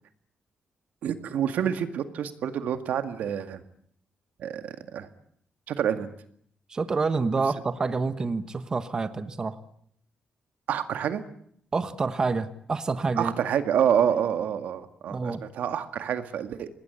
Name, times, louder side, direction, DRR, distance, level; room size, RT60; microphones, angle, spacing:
voice 1, 1.0-3.6 4.4-5.1 5.7-6.1 10.7-11.2 13.2-16.7, right 8 dB, 80° right, 9 dB, 2.1 m, -27 dB
voice 2, 6.7-9.6 11.7-13.3 15.1-15.4, right 4 dB, 25° right, 10 dB, 1.2 m, -28 dB
26.0 x 20.0 x 9.8 m, 0.69 s
wide cardioid pair, 160°, 3 cm